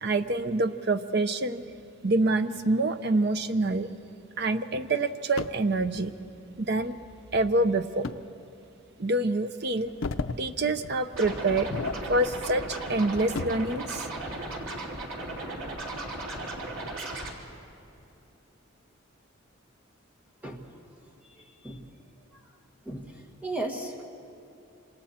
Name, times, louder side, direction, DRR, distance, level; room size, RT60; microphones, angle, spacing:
voice 1, 0.0-1.6 2.0-3.9 4.4-6.1 6.6-6.9 7.3-8.1 9.0-9.9 10.4-11.7 12.1-14.1, right 2 dB, 50° right, 10 dB, 0.7 m, -26 dB
sound 1, 5.4-5.7 8.0-8.2 8.8-8.9 9.7-10.4 10.8-11.0 11.5-12.4 12.8-13.7 15.3-16.4 16.9-17.0 17.7-18.0, left 4 dB, 75° left, 0.6 m, -36 dB
Scratching (performance technique), 11.1-17.3, right 2 dB, 80° right, 2.9 m, -36 dB
voice 2, 21.4-21.8 22.8-24.0, right 2 dB, 5° right, 1 dB, 1.7 m, -36 dB
26.5 x 26.0 x 4.4 m, 2.8 s
head